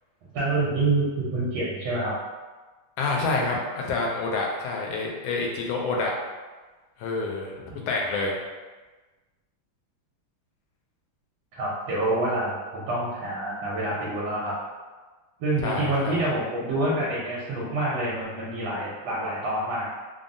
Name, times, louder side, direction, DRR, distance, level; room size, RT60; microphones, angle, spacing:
voice 1, 0.3-2.1 7.7-7.8 11.5-14.5 15.4-19.9, right 2 dB, 75° right, -7 dB, 1.4 m, -27 dB
voice 2, 3.0-6.1 7.0-7.6 7.9-8.4 15.6-16.2, left 3 dB, 75° left, -1 dB, 1.3 m, -27 dB
3.7 x 2.0 x 2.5 m, 1.3 s
omnidirectional pair, 2.4 m